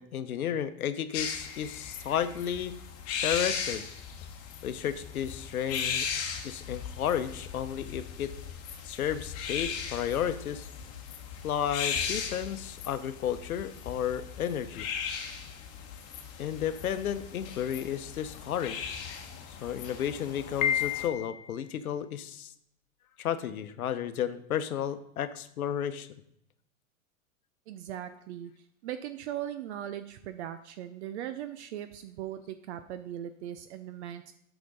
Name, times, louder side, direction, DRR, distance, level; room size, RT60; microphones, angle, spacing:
voice 1, 0.0-2.8 3.2-3.9 4.6-6.1 6.4-8.3 8.8-10.7 11.4-14.9 16.4-18.9 19.5-22.5 23.2-26.1, left 9 dB, 90° left, 12 dB, 0.8 m, -32 dB
sound 1, 1.1-21.1, left 7 dB, 35° left, 1.3 m, -38 dB
Piano, 20.6-21.6, left 9 dB, 60° left, 0.9 m, -30 dB
voice 2, 27.7-28.5 28.8-34.3, right 11 dB, 55° right, 10 dB, 0.6 m, -39 dB
8.5 x 6.0 x 3.9 m, 0.73 s
hypercardioid pair, 125°, 42 cm